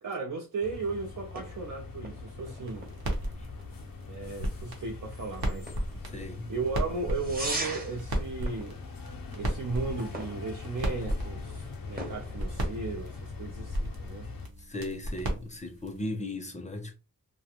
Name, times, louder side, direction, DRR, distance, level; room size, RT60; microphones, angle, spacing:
voice 1, 0.0-2.9 4.1-5.7 6.5-8.8 9.3-14.3, right 4 dB, 60° right, 0.5 m, -36 dB
sound 1, 0.6-14.5, left 4 dB, 70° left, 0.6 m, -42 dB
sound 2, 0.7-13.3, right 2 dB, 25° right, 0.8 m, -43 dB
sound 3, 2.6-16.0, equal, 90° right, 0.9 m, -36 dB
voice 2, 6.1-6.5 14.7-16.9, left 1 dB, 20° left, 0.5 m, -37 dB
2.4 x 2.2 x 2.8 m
wide cardioid pair, 75°, 36 cm